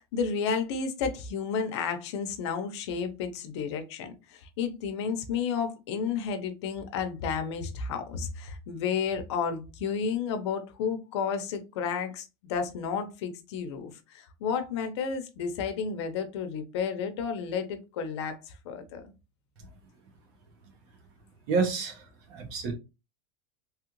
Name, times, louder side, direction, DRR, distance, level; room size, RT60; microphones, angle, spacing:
voice 1, 0.0-18.4 18.6-19.1, left 6 dB, 75° left, 0.8 m, -32 dB
voice 2, 21.5-22.7, right 4 dB, 55° right, 1.1 m, -29 dB
3.1 x 2.4 x 3.0 m
supercardioid pair, 160°, 14 cm